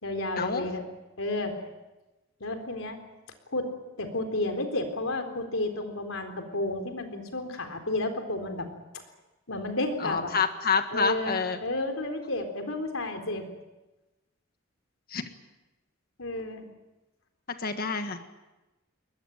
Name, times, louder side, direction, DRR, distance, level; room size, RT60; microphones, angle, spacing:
voice 1, 0.0-0.8 1.2-1.5 2.4-3.0 3.5-3.7 4.0-8.7 9.5-10.3 10.9-13.5 16.2-16.6, left 2 dB, 80° left, 6 dB, 3.9 m, -31 dB
voice 2, 10.0-11.6 15.1-15.2 17.6-18.2, left 5 dB, 50° left, 7 dB, 1.6 m, -27 dB
22.5 x 20.5 x 9.1 m, 1.1 s
head